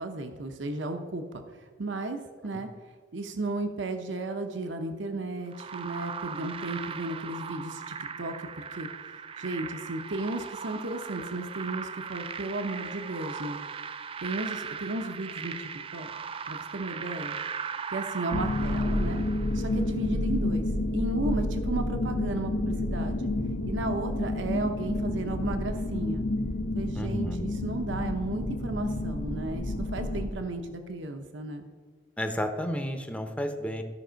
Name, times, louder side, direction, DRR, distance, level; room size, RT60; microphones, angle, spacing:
voice 1, 0.0-2.7 3.1-8.9 9.4-13.6 14.2-16.1 16.5-17.4 17.9-19.3 19.5-20.7 20.9-23.3 23.7-26.2 26.7-31.7, right 2 dB, 70° right, 6 dB, 0.8 m, -34 dB
sound 1, 5.5-19.9, right 6 dB, 30° right, 0.4 m, -38 dB
sound 2, 18.3-30.3, left 1 dB, 70° left, 0.8 m, -30 dB
voice 2, 26.9-27.6 32.2-33.8, equal, 5° left, 6 dB, 0.7 m, -32 dB
14.0 x 5.4 x 5.1 m, 1.5 s
head